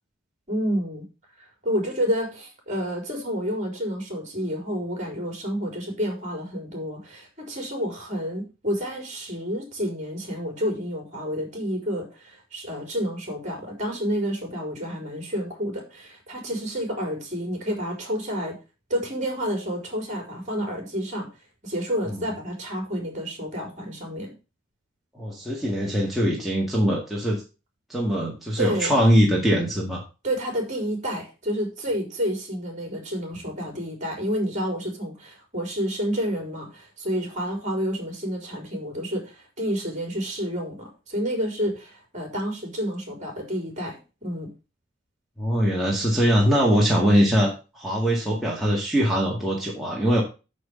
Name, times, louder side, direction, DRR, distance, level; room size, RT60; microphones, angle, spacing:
voice 1, 0.5-1.1 1.4-18.6 18.9-21.3 21.6-24.3 28.6-28.9 30.2-44.5, equal, 35° right, 2 dB, 4.3 m, -29 dB
voice 2, 25.2-27.4 27.9-30.0 45.4-50.2, equal, ahead, -4 dB, 1.9 m, -22 dB
6.9 x 6.3 x 6.8 m, 0.31 s
head